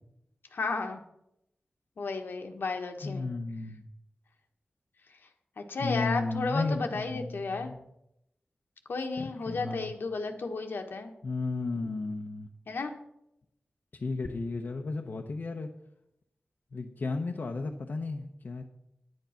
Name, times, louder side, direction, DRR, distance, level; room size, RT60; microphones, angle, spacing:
voice 1, 0.5-1.0 2.0-3.3 5.6-7.7 8.9-11.1 12.7-12.9, left 3 dB, 85° left, 4 dB, 1.3 m, -33 dB
voice 2, 3.0-3.8 5.8-7.8 9.2-9.9 11.2-12.5 13.9-15.7 16.7-18.6, left 3 dB, 60° left, 3 dB, 0.8 m, -34 dB
9.6 x 9.3 x 5.8 m, 0.81 s
wide cardioid pair, 110°, 3 cm